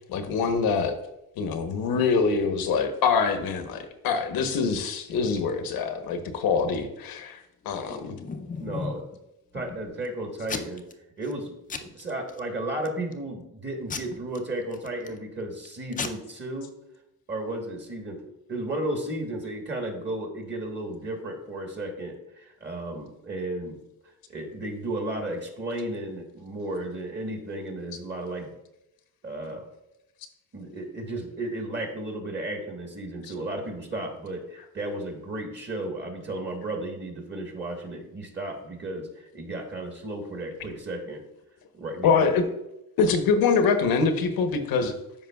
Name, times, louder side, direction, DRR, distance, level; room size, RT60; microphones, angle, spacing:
voice 1, 0.1-0.9 1.4-8.2 42.0-42.5 43.0-44.9, left 5 dB, 80° left, 8 dB, 1.0 m, -24 dB
Packing tape duct tape / Tearing, 7.7-9.1 9.6-10.1 10.5-10.9 11.2-11.4 11.7-12.4 12.9-13.2 13.9-15.2 15.6-15.7 15.9-16.1, left 5 dB, 25° left, 0.5 m, -36 dB
voice 2, 8.6-9.1 9.5-10.8 11.2-11.6 11.9-16.7 17.3-23.8 24.3-28.5 29.2-29.6 30.5-41.2 41.7-42.3, right 1 dB, 30° right, 2 dB, 1.3 m, -34 dB
13.0 x 4.9 x 2.3 m, 0.87 s
cardioid pair, 130°, 36 cm